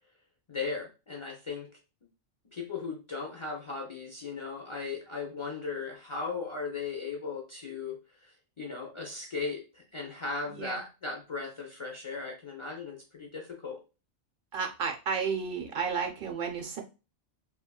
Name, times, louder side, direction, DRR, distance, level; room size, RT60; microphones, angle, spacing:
voice 1, 0.5-1.7 2.5-13.8, left 4 dB, 50° left, -1 dB, 0.3 m, -37 dB
voice 2, 10.5-10.8 14.5-16.8, right 6 dB, 60° right, 4 dB, 0.6 m, -32 dB
3.0 x 2.3 x 2.2 m, 0.30 s
omnidirectional pair, 1.2 m